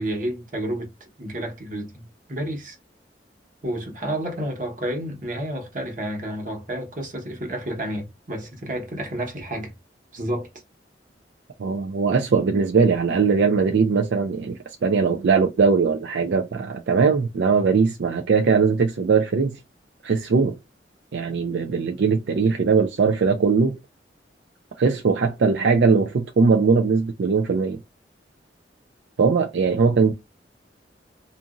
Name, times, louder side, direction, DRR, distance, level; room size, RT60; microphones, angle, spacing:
voice 1, 0.0-2.8 3.6-9.7 10.1-10.5, right 1 dB, 50° right, 1.1 m, -30 dB
voice 2, 11.6-19.6 20.0-20.5 21.1-23.8 24.8-27.8 29.2-30.1, right 5 dB, 80° right, 0.4 m, -20 dB
2.8 x 2.5 x 2.4 m
head